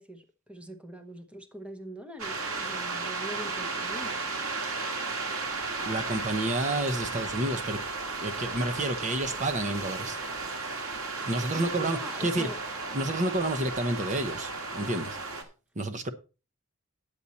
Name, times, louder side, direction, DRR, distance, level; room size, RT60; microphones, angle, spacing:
voice 1, 0.0-4.1 11.5-12.6, right 1 dB, 5° right, 1.0 m, -43 dB
sound 1, 2.2-15.4, right 3 dB, 85° right, 2.0 m, -34 dB
voice 2, 5.9-7.8 8.2-10.2 11.3-12.5 12.9-15.2 15.8-16.1, right 1 dB, 35° right, 0.9 m, -30 dB
10.0 x 8.4 x 4.2 m
head